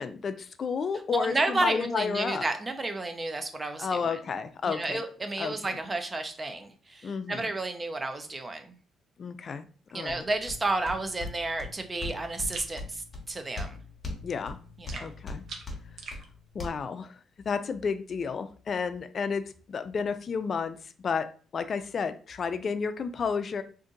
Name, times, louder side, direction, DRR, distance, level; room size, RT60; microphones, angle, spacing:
voice 1, 0.0-2.5 3.8-5.0 5.4-5.5 7.0-7.5 9.2-9.7 9.9-10.2 14.2-14.6 15.0-15.4 16.5-17.1 17.5-20.8 21.0-21.3 21.5-23.6, left 5 dB, 50° left, 11 dB, 0.4 m, -31 dB
voice 2, 1.1-4.2 4.6-8.8 9.9-13.8 14.8-15.1, right 2 dB, 25° right, 7 dB, 0.6 m, -31 dB
sound 1, 10.1-16.7, left 3 dB, 35° left, 1.0 m, -41 dB
sound 2, 12.5-12.8 14.9-16.2, right 4 dB, 65° right, 0.6 m, -42 dB
2.6 x 2.5 x 3.8 m, 0.40 s
cardioid pair, 90°, 0 cm